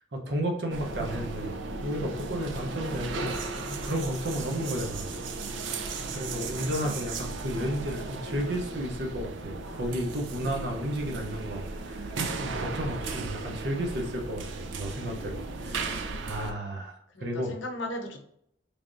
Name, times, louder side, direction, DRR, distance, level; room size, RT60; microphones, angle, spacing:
voice 1, 0.1-1.5 1.8-5.2 6.0-17.6, equal, 60° right, 1 dB, 0.9 m, -33 dB
sound 1, 0.7-16.5, right 3 dB, 80° right, 0.5 m, -36 dB
voice 2, 6.5-7.0 17.1-18.3, left 1 dB, 80° left, 3 dB, 0.7 m, -37 dB
4.1 x 3.4 x 2.6 m, 0.71 s
head